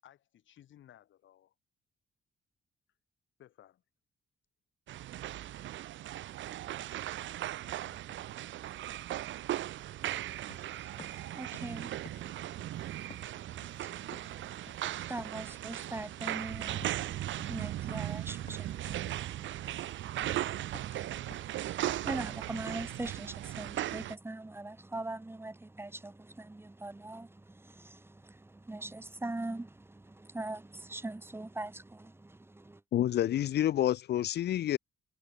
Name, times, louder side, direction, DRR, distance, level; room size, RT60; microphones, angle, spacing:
voice 1, 0.0-1.5 3.4-3.8 8.1-8.2, left 11 dB, 75° left, 6.5 m, -59 dB
sound 1, 4.9-24.1, right 13 dB, 75° right, 0.9 m, -38 dB
voice 2, 10.0-32.8, right 2 dB, 10° right, 5.6 m, -43 dB
sound 2, 10.4-23.1, left 5 dB, 30° left, 7.9 m, -58 dB
voice 3, 32.9-34.8, left 12 dB, 55° left, 0.6 m, -28 dB
cardioid pair, 140°, 20 cm